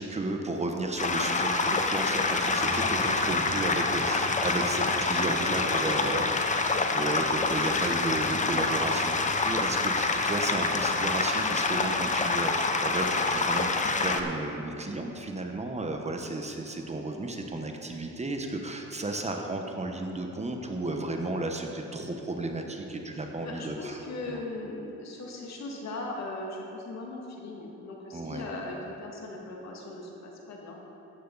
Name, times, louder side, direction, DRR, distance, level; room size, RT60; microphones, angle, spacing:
voice 1, 0.0-6.3 6.7-24.0 24.3-24.4 28.1-28.5, right 2 dB, 20° right, 3 dB, 1.0 m, -33 dB
sound 1, 1.0-14.2, left 3 dB, 25° left, 0.8 m, -27 dB
voice 2, 5.4-6.5 6.8-7.0 23.1-30.8, left 2 dB, 65° left, -1 dB, 2.2 m, -39 dB
14.0 x 9.3 x 4.0 m, 3.0 s
cardioid pair, 105°, 30 cm